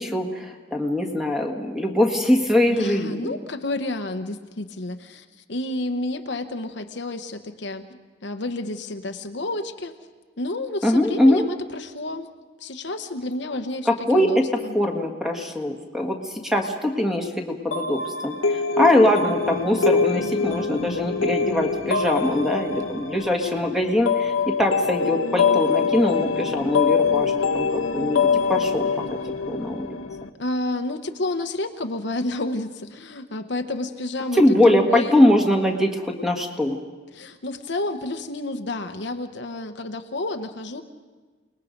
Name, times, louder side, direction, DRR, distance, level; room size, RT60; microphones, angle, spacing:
voice 1, 0.0-3.3 10.8-11.4 13.9-24.3 24.6-28.9 29.5-30.0 34.3-36.8, left 1 dB, ahead, 2 dB, 1.6 m, -22 dB
voice 2, 2.7-9.9 10.4-12.3 12.6-14.7 30.4-35.2 37.1-40.8, left 2 dB, 60° left, 7 dB, 0.9 m, -30 dB
sound 1, 17.7-30.3, left 5 dB, 90° left, 1.0 m, -24 dB
29.0 x 20.0 x 5.2 m, 1.4 s
head